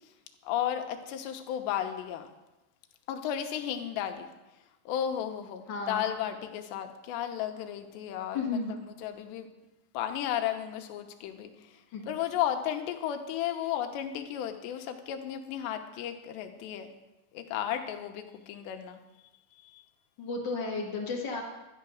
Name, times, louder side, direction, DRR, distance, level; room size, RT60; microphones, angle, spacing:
voice 1, 0.4-2.3 3.1-4.3 4.9-8.6 9.0-9.5 9.9-11.8 12.1-16.9 17.3-19.0 19.6-19.8, left 10 dB, 90° left, 7 dB, 3.2 m, -34 dB
voice 2, 5.7-6.1 8.3-8.8 11.9-12.0 20.2-21.4, left 4 dB, 60° left, -1 dB, 1.1 m, -33 dB
12.5 x 10.5 x 6.3 m, 1.0 s
omnidirectional pair, 4.9 m